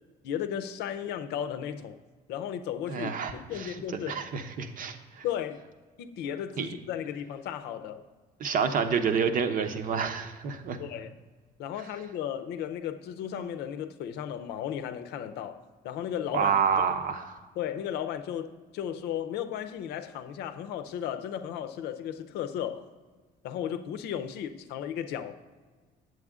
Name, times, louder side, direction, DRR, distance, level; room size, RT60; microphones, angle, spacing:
voice 1, 0.2-2.0 2.3-4.2 5.2-5.6 6.0-8.0 10.8-11.1 11.6-16.9 17.6-22.8 23.4-25.4, left 9 dB, 80° left, 0.6 m, -35 dB
voice 2, 2.9-3.8 4.1-5.2 6.6-6.7 8.4-10.8 16.3-17.4, right 6 dB, 55° right, 0.8 m, -28 dB
8.0 x 7.7 x 3.6 m
cardioid pair, 110°, 17 cm